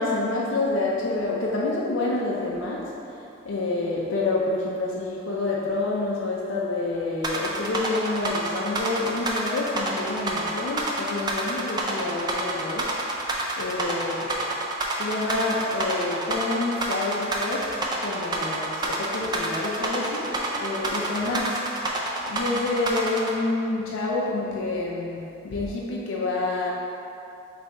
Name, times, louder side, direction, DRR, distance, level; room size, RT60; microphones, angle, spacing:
voice 1, 0.0-13.2 13.6-14.2 15.0-22.0 22.3-26.7, left 2 dB, 70° left, -4 dB, 0.5 m, -28 dB
sound 1, 7.2-23.3, right 2 dB, 20° right, 0.3 m, -28 dB
3.5 x 3.2 x 3.9 m, 2.7 s
head